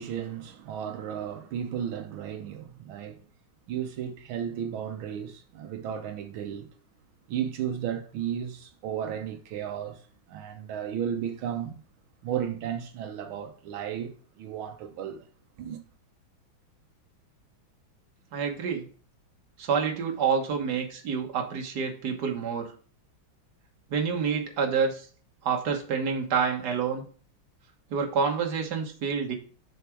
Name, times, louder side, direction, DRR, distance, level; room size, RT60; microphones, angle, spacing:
voice 1, 0.0-3.2 3.7-6.7 7.3-10.0 10.3-11.8 12.2-15.3 15.6-15.8, right 9 dB, 85° right, 1.6 m, -34 dB
voice 2, 18.3-18.9 19.6-22.7 23.9-25.1 25.4-27.1 27.9-29.3, right 6 dB, 55° right, 1.8 m, -28 dB
6.9 x 4.9 x 4.6 m
omnidirectional pair, 2.2 m